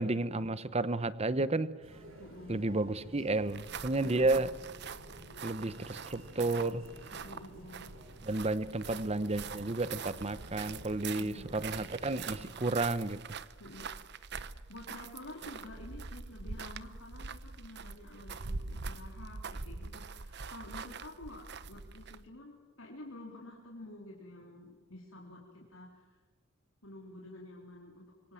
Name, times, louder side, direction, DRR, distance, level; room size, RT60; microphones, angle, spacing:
voice 1, 0.0-1.7 2.5-4.5 5.4-6.8 8.2-13.2, right 2 dB, 30° right, 16 dB, 0.9 m, -32 dB
sound 1, 1.8-12.6, equal, 80° right, 6.7 m, -53 dB
voice 2, 2.2-2.6 4.0-4.4 7.1-7.9 11.2-11.9 13.6-13.9 14.4-26.2 26.8-28.3, left 1 dB, 90° left, -2 dB, 3.9 m, -50 dB
sound 2, 3.4-22.3, right 5 dB, 55° right, 0.9 m, -44 dB
26.0 x 23.5 x 7.7 m, 1.3 s
head